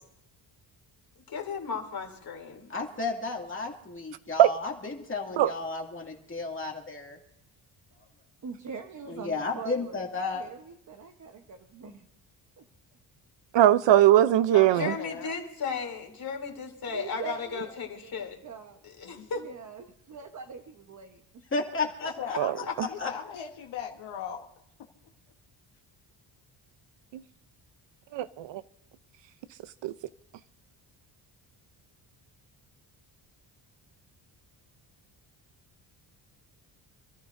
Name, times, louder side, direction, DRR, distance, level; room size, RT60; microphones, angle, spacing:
voice 1, 1.3-2.7 14.8-18.4 18.8-19.4 22.0-22.4, left 5 dB, 50° left, 3.2 m, -35 dB
voice 2, 2.7-7.2 9.1-10.4 21.5-22.4 22.8-23.1, left 3 dB, 25° left, 2.3 m, -33 dB
voice 3, 8.4-12.1 12.6-12.7 16.9-18.1 18.4-18.8 19.3-21.2, right 6 dB, 40° right, 1.1 m, -43 dB
voice 4, 13.5-14.9 22.4-22.5 28.1-28.6 29.8-29.9, right 12 dB, 70° right, 0.7 m, -20 dB
voice 5, 14.5-15.3 19.0-19.3 22.2-24.5, left 8 dB, 80° left, 1.4 m, -39 dB
27.5 x 13.5 x 2.7 m
cardioid pair, 115°, 45 cm